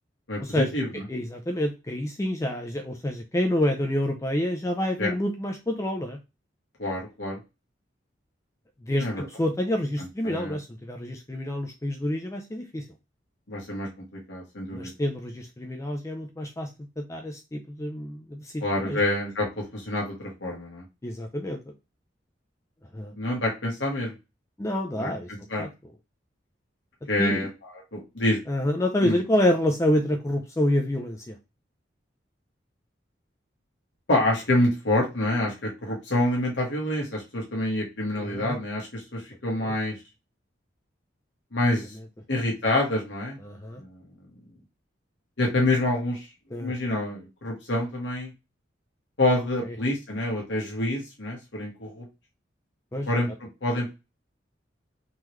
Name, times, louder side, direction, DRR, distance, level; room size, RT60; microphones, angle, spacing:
voice 1, 0.3-1.0 5.0-5.1 6.8-7.4 9.0-9.2 10.2-10.6 13.5-13.9 14.3-14.9 18.6-20.8 23.2-24.1 25.0-25.1 25.5-25.6 27.1-27.5 27.9-28.4 29.0-29.2 34.1-40.0 41.5-41.9 42.3-43.4 43.8-44.0 45.4-46.3 46.6-48.3 49.2-52.0 53.1-53.3 53.6-53.9, left 1 dB, 75° left, -2 dB, 1.2 m, -27 dB
voice 2, 1.1-6.2 8.8-12.8 14.7-16.7 17.0-19.0 21.0-21.6 22.9-23.1 24.6-25.3 25.6-25.7 27.2-27.5 28.5-31.4 38.2-38.6 39.6-39.7 43.4-43.8 46.5-46.9 49.6-49.7 52.9-53.1, left 1 dB, 15° left, 4 dB, 0.4 m, -28 dB
3.7 x 3.0 x 3.1 m, 0.26 s
head